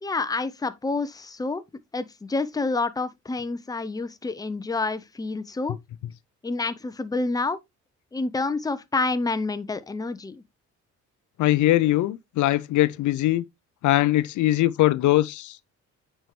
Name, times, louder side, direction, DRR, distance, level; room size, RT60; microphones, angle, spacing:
voice 1, 0.0-1.6 1.9-5.8 6.4-7.6 8.1-10.4, left 3 dB, 10° left, 0.6 m, -28 dB
voice 2, 11.4-13.4 13.8-15.6, left 15 dB, 75° left, 0.5 m, -21 dB
9.2 x 4.5 x 3.1 m
cardioid pair, 90°, 30 cm